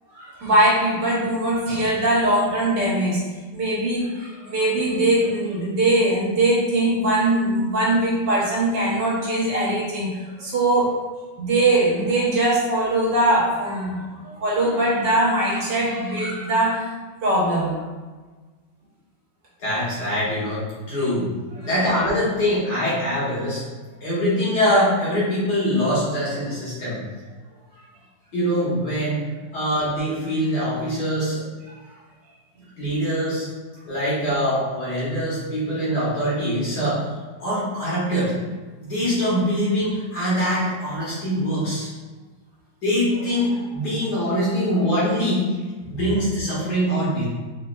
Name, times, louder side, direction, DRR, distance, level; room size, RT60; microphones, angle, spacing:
voice 1, 0.1-3.2 3.5-10.9 11.4-16.9 17.2-17.8 21.6-21.7, right 1 dB, 70° right, -5 dB, 1.7 m, -21 dB
voice 2, 19.6-21.3 21.6-23.6 24.0-27.0 28.3-29.3 29.5-31.4 32.8-33.5 33.9-37.1 37.4-38.4 38.8-41.9 42.8-45.5 45.9-47.3, equal, 60° left, -8 dB, 2.1 m, -23 dB
4.0 x 4.0 x 2.3 m, 1.3 s
omnidirectional pair, 2.0 m